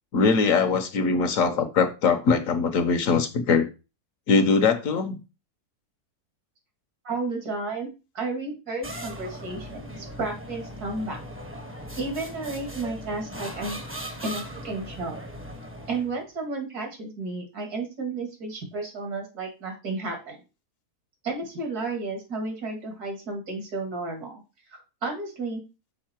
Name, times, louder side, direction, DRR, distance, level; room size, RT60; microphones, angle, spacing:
voice 1, 0.1-3.7 4.3-5.2, left 5 dB, 65° left, 1.2 m, -22 dB
voice 2, 7.0-11.2 12.0-13.8 14.2-15.2 15.9-20.4 21.2-24.4 24.7-25.6, right 3 dB, 75° right, 2.7 m, -32 dB
sound 1, 8.8-16.2, equal, 10° right, 0.7 m, -39 dB
6.5 x 5.3 x 4.4 m
omnidirectional pair, 1.6 m